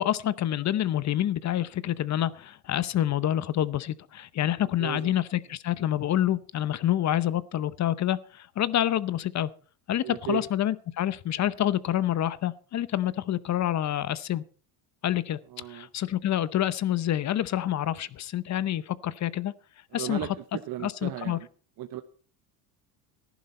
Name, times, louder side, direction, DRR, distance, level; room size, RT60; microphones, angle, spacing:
voice 1, 0.0-9.5 9.9-14.4 15.0-15.4 15.7-19.5 19.9-20.2 20.8-21.4, left 12 dB, 35° left, 0.8 m, -27 dB
voice 2, 4.6-5.1 10.0-10.4 15.5-15.9 19.9-21.5 21.8-22.0, right 13 dB, 45° right, 1.0 m, -36 dB
14.5 x 11.0 x 4.3 m
supercardioid pair, 105°, 49 cm